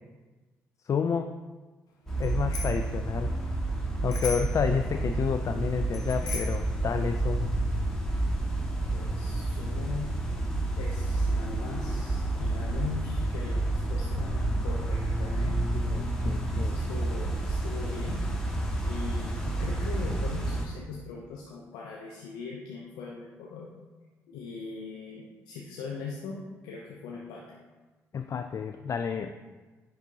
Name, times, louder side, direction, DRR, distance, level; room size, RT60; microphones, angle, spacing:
voice 1, 0.9-1.4 2.2-3.3 4.0-7.5 15.8-16.7 28.1-29.4, left 6 dB, 45° left, 7 dB, 0.4 m, -30 dB
sound 1, 2.1-20.6, right 2 dB, 5° left, 1.9 m, -29 dB
Bicycle bell, 2.2-2.9 4.1-4.7 5.9-6.7, left 5 dB, 60° left, 1.2 m, -38 dB
voice 2, 8.9-10.1 10.8-15.6 16.5-18.3 18.8-23.7 24.3-27.6, left 5 dB, 80° left, -2 dB, 0.7 m, -40 dB
10.0 x 3.9 x 2.9 m, 1.3 s
hypercardioid pair, 50°, 7 cm